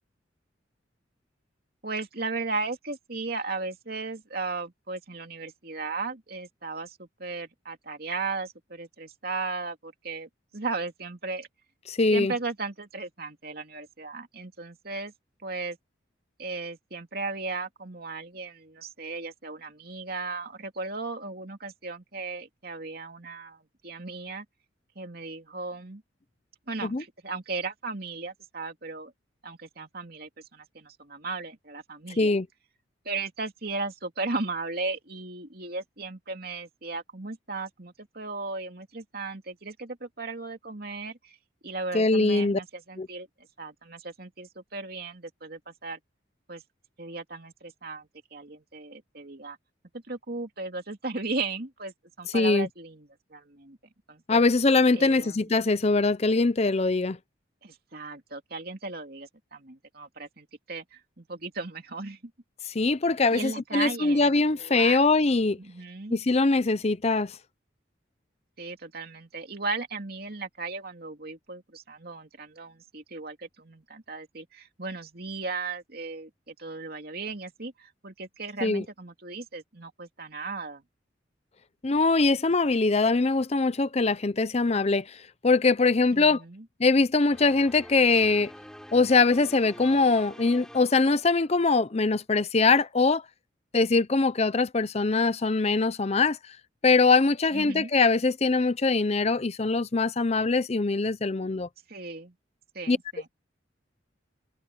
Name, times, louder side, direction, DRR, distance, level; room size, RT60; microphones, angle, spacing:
voice 1, 1.8-11.5 12.1-15.1 15.4-15.8 16.4-24.4 24.9-26.0 26.7-29.1 29.4-32.3 33.0-41.4 41.6-43.3 43.6-46.0 46.5-46.6 47.0-49.6 50.1-53.8 54.1-54.4 55.0-55.5 57.6-62.3 63.3-65.0 65.6-66.2 68.6-80.8 86.1-86.6 97.5-97.9 101.9-102.3 102.7-103.3, right 3 dB, 50° right, 2.8 m, -36 dB
voice 2, 11.9-12.3 26.8-27.0 32.2-32.5 41.9-42.6 43.0-43.1 52.3-52.7 54.3-57.2 62.7-65.6 66.1-67.4 78.6-78.8 81.8-86.4 86.8-88.5 88.9-93.2 93.7-96.4 96.8-101.7 102.9-103.0, left 3 dB, 35° left, 0.6 m, -22 dB
sound 1, 87.3-91.8, equal, 5° left, 5.5 m, -47 dB
head